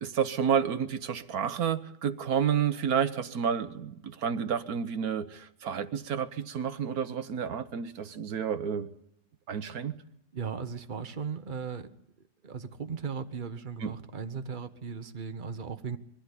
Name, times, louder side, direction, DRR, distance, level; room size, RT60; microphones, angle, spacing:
voice 1, 0.0-8.9 9.5-10.0 13.8-13.9, right 7 dB, 50° right, 10 dB, 1.3 m, -30 dB
voice 2, 10.3-11.9 12.4-16.0, right 6 dB, 35° right, 8 dB, 0.8 m, -37 dB
22.5 x 15.5 x 9.9 m, 0.77 s
omnidirectional pair, 2.3 m